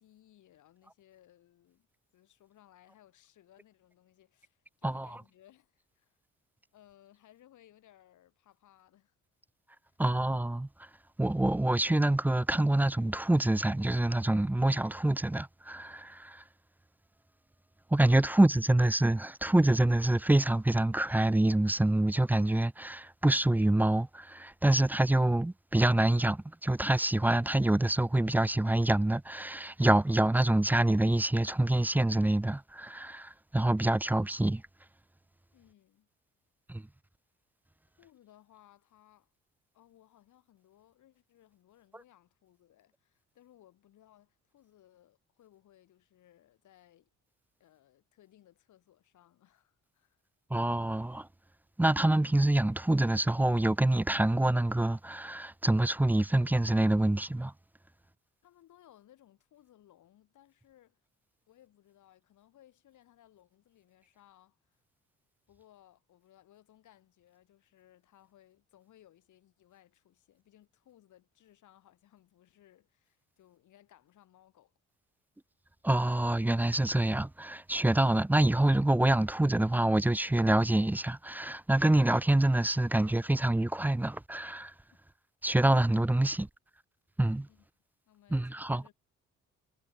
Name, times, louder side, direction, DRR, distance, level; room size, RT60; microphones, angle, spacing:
voice 1, 0.0-1.9 2.1-6.2 6.7-9.1 9.9-10.0 18.2-18.7 35.5-36.1 38.0-39.3 39.7-47.1 47.6-50.2 58.4-61.0 61.5-64.8 65.5-74.7 87.5-87.7 88.1-88.9, left 12 dB, 75° left, 7.7 m, -62 dB
voice 2, 10.0-10.7 11.2-16.4 17.9-34.6 36.7-36.8 50.5-51.3 51.8-57.5 75.8-84.7 85.4-86.5 87.2-87.5 88.3-88.8, right 1 dB, 5° right, 0.4 m, -26 dB
cardioid pair, 90°, 30 cm